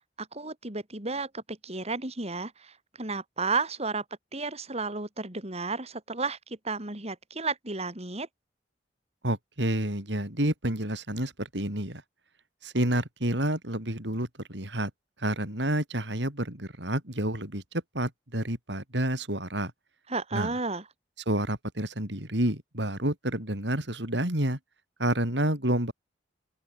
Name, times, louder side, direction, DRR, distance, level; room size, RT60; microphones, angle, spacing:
voice 1, 0.2-4.0 4.3-8.3 20.1-20.8, right 3 dB, 35° right, 4.7 m, -33 dB
voice 2, 9.2-12.0 12.6-14.9 15.2-19.7 20.3-20.5 21.3-24.6 25.0-25.9, right 1 dB, 65° right, 6.4 m, -29 dB
open air
head